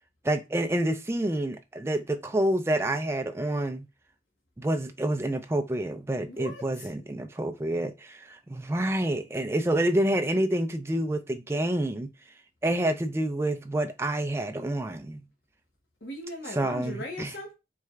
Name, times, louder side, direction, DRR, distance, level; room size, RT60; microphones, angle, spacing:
voice 1, 0.2-3.9 4.6-12.1 12.6-15.2 16.5-17.3, right 1 dB, 15° right, 0.4 m, -28 dB
voice 2, 6.3-6.9 16.0-17.5, left 1 dB, 85° left, 0.9 m, -38 dB
4.6 x 3.2 x 2.3 m
head